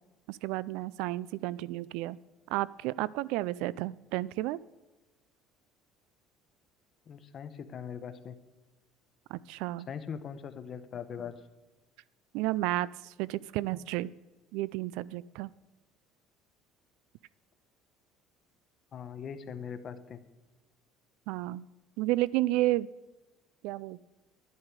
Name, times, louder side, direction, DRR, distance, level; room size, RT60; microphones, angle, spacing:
voice 1, 0.3-2.2 2.5-4.6 9.3-9.9 12.3-14.1 14.5-15.5 21.3-21.6 22.0-22.9 23.6-24.0, right 17 dB, 80° right, 21 dB, 0.4 m, -32 dB
voice 2, 7.1-8.3 9.9-11.4 18.9-20.2, left 7 dB, 35° left, 10 dB, 0.9 m, -41 dB
11.5 x 11.0 x 4.8 m, 1.1 s
cardioid pair, 145°, 0 cm